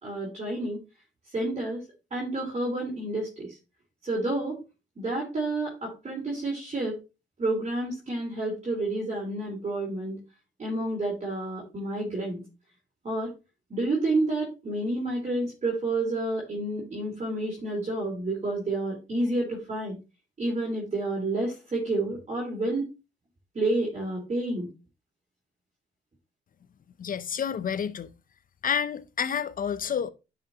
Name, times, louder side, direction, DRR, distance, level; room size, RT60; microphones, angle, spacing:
voice 1, 0.0-0.8 1.3-1.8 2.1-3.6 4.0-4.6 5.0-7.0 7.4-10.2 10.6-12.4 13.0-13.3 13.7-19.9 20.4-22.9 23.5-24.7, right 2 dB, 35° right, 3.7 m, -29 dB
voice 2, 27.0-28.1 28.6-30.1, left 7 dB, 45° left, 0.7 m, -29 dB
9.8 x 5.8 x 2.9 m
cardioid pair, 90°, 20 cm